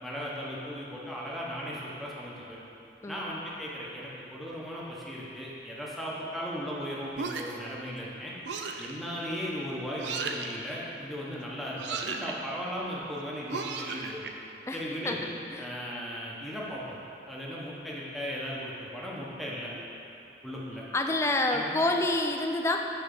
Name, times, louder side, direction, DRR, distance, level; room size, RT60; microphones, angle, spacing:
voice 1, 0.0-2.6 3.1-8.3 8.8-14.2 14.7-15.2 15.6-17.0 17.3-19.7 20.4-20.9 21.5-21.7, equal, ahead, -6 dB, 0.9 m, -37 dB
sound 1, 7.1-7.7 8.4-8.9 10.0-10.5 11.8-12.3 13.5-14.3, right 5 dB, 75° right, 0.5 m, -35 dB
voice 2, 14.7-15.2 15.5-15.7 20.9-22.9, left 2 dB, 15° left, 3 dB, 0.3 m, -28 dB
6.9 x 4.2 x 5.3 m, 2.9 s
head